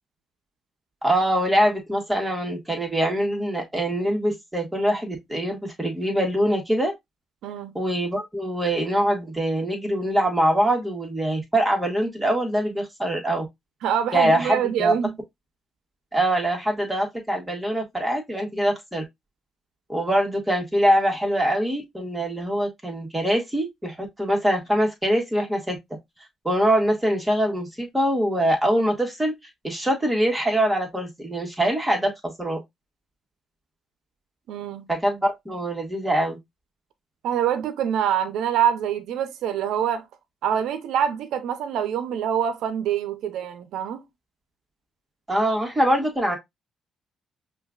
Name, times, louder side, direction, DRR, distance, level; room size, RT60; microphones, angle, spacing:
voice 1, 1.0-6.9 7.7-13.5 14.1-14.9 16.1-19.0 19.9-25.8 26.4-29.3 29.6-32.1 32.4-32.6 34.9-36.4 45.3-46.4, right 1 dB, 10° right, 1.8 m, -23 dB
voice 2, 13.8-15.1 34.5-34.9 37.2-40.0 40.4-44.0, right 9 dB, 85° right, 0.6 m, -25 dB
5.5 x 2.6 x 2.3 m
cardioid pair, 90°, 0 cm